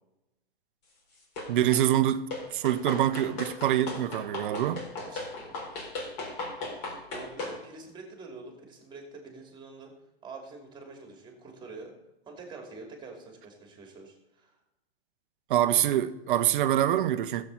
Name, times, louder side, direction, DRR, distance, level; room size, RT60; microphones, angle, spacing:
sound 1, 1.4-1.9 2.3-7.6, left 2 dB, 40° left, 3.9 m, -37 dB
voice 1, 1.5-4.8 15.5-17.4, right 12 dB, 55° right, 0.9 m, -25 dB
voice 2, 5.0-5.6 6.7-9.9 10.2-11.9 12.2-14.6, right 3 dB, 15° right, 2.6 m, -46 dB
15.0 x 7.7 x 4.0 m
hypercardioid pair, 120°, 32 cm